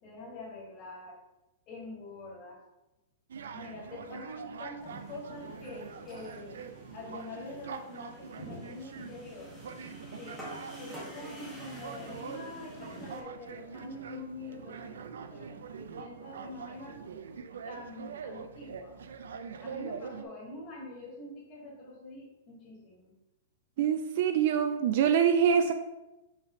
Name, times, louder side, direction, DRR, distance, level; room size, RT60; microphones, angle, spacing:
voice 1, 0.0-1.2 1.7-2.6 3.5-9.6 10.1-17.0 17.6-19.0 19.6-23.2, left 2 dB, 25° left, -4 dB, 1.8 m, -45 dB
sound 1, 3.3-20.2, right 6 dB, 90° right, 0.5 m, -44 dB
sound 2, 4.8-13.2, equal, ahead, 1.1 m, -48 dB
voice 2, 23.8-25.7, right 8 dB, 40° right, 8 dB, 0.4 m, -24 dB
5.6 x 3.4 x 5.6 m, 0.99 s
supercardioid pair, 175°, 0 cm